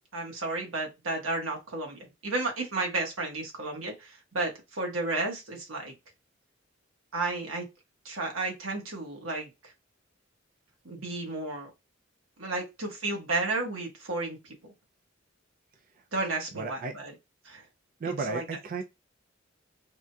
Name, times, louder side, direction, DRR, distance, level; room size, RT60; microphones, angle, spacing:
voice 1, 0.1-5.9 7.1-7.7 8.0-9.7 10.8-11.7 12.4-14.4 16.1-17.0 17.4-17.6 18.0-18.4, right 2 dB, 85° right, 1.3 m, -32 dB
voice 2, 16.6-17.0 18.0-18.8, right 4 dB, 45° right, 0.4 m, -34 dB
3.5 x 2.7 x 2.2 m
head